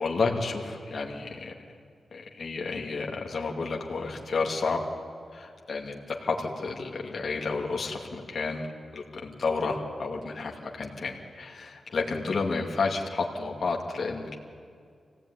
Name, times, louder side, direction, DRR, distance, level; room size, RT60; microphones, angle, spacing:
voice 1, 0.0-1.5 2.1-4.8 5.3-8.7 8.9-14.4, left 4 dB, 55° left, 0 dB, 2.5 m, -31 dB
25.0 x 17.5 x 9.8 m, 2.2 s
wide cardioid pair, 140°, 0 cm